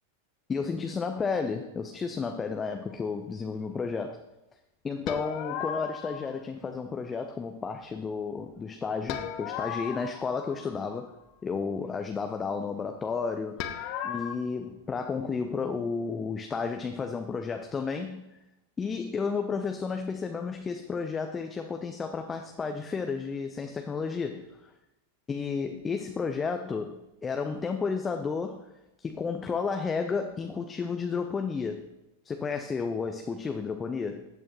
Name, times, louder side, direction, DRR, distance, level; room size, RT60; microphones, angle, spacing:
voice 1, 0.5-4.2 4.8-11.1 11.4-18.4 18.8-24.7 25.3-28.6 29.0-31.9 32.2-34.3, left 5 dB, 20° left, 6 dB, 0.7 m, -32 dB
sound 1, 5.1-6.4 9.1-11.0 13.6-14.4, left 9 dB, 45° left, 1.0 m, -36 dB
14.5 x 8.7 x 3.1 m, 0.94 s
figure-of-eight pair, 90°, 0 cm